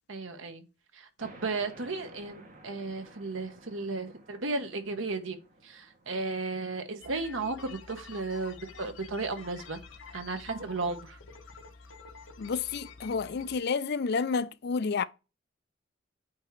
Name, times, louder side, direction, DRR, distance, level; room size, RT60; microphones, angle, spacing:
voice 1, 0.1-0.6 0.9-5.4 5.6-9.8 10.1-11.2, right 3 dB, 80° right, 1.2 m, -34 dB
sound 1, 1.2-8.4, right 2 dB, 45° right, 1.5 m, -55 dB
sound 2, 7.0-13.6, left 4 dB, 75° left, 1.1 m, -49 dB
voice 2, 12.4-15.0, left 5 dB, 55° left, 0.5 m, -30 dB
8.7 x 3.0 x 4.6 m
head